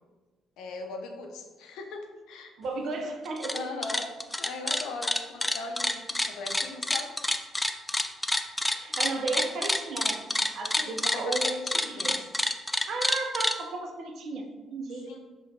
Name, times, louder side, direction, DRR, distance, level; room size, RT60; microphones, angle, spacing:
voice 1, 0.6-2.5 3.5-4.1 4.4-7.1 10.8-12.2 15.1-15.2, left 3 dB, 80° left, 3 dB, 0.5 m, -39 dB
voice 2, 2.6-3.6 8.7-10.2 10.5-12.2 12.7-15.1, right 3 dB, 60° right, 3 dB, 0.6 m, -34 dB
sound 1, 3.3-3.6 3.8-13.6, left 1 dB, 10° left, 0.3 m, -27 dB
4.9 x 3.0 x 2.7 m, 1.3 s
supercardioid pair, 70°, 0 cm